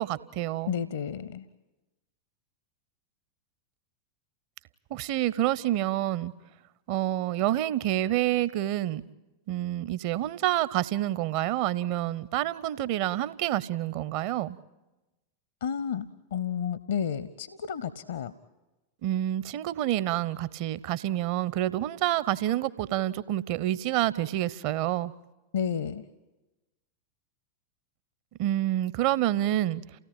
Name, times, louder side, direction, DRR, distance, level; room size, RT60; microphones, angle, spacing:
voice 1, 0.0-0.7 4.9-6.3 6.9-9.0 9.5-14.6 19.0-25.1 28.4-29.8, right 13 dB, 45° right, 18 dB, 0.8 m, -28 dB
voice 2, 0.7-1.4 15.6-18.3 25.5-26.0, left 8 dB, 60° left, 15 dB, 0.7 m, -31 dB
29.0 x 17.5 x 8.8 m, 1.1 s
figure-of-eight pair, 90°, 0 cm